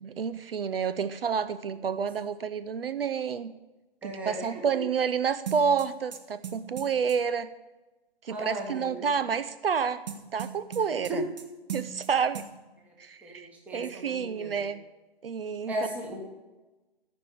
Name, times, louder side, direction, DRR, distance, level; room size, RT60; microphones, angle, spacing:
voice 1, 0.0-3.5 4.0-7.5 8.2-10.1 10.3-11.2 11.7-12.4 13.0-14.8 15.2-15.8, right 6 dB, 65° right, 14 dB, 0.6 m, -29 dB
voice 2, 4.0-4.6 8.3-9.1 11.1-11.2 12.9-13.0 13.2-14.6 15.7-16.2, right 1 dB, 5° right, 0 dB, 1.0 m, -36 dB
sound 1, 5.5-7.2 10.1-11.4 11.7-12.1 12.3-12.5, right 8 dB, 40° right, 1.2 m, -37 dB
14.0 x 5.2 x 8.6 m, 1.1 s
hypercardioid pair, 155°, 32 cm